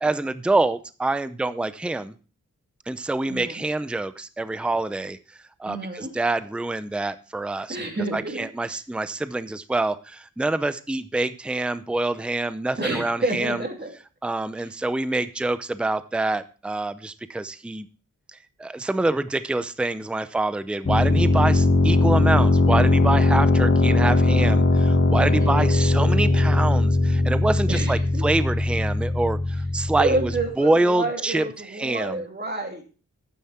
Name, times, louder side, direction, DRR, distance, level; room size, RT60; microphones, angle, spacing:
voice 1, 0.0-2.1 2.9-5.2 5.6-7.8 8.1-13.6 14.2-17.9 18.3-30.3 30.6-31.5 31.8-32.2, right 2 dB, 5° right, 13 dB, 0.5 m, -26 dB
voice 2, 3.3-3.6 5.7-6.1 7.7-8.8 12.8-13.9 14.5-14.7 25.3-25.7 27.7-28.3 30.0-32.8, right 2 dB, 30° right, 2 dB, 2.8 m, -29 dB
sound 1, 20.9-30.5, left 2 dB, 45° left, 2.0 m, -20 dB
11.5 x 9.4 x 4.2 m, 0.36 s
wide cardioid pair, 105°, 32 cm